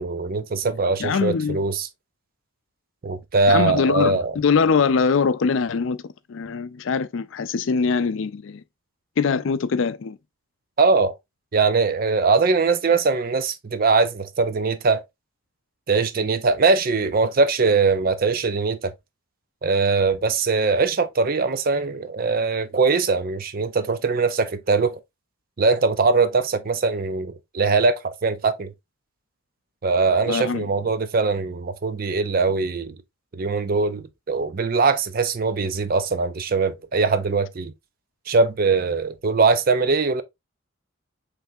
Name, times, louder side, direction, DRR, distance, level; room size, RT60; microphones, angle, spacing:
voice 1, 0.0-1.9 3.0-4.3 10.8-11.1 11.5-15.0 15.9-18.9 19.6-25.0 25.6-28.7 29.8-33.0 33.3-37.7 38.3-40.2, right 4 dB, 45° right, 0.5 m, -21 dB
voice 2, 1.0-1.6 3.5-8.6 9.2-10.2 30.3-30.7, left 5 dB, 65° left, 0.4 m, -22 dB
5.7 x 3.3 x 2.6 m
head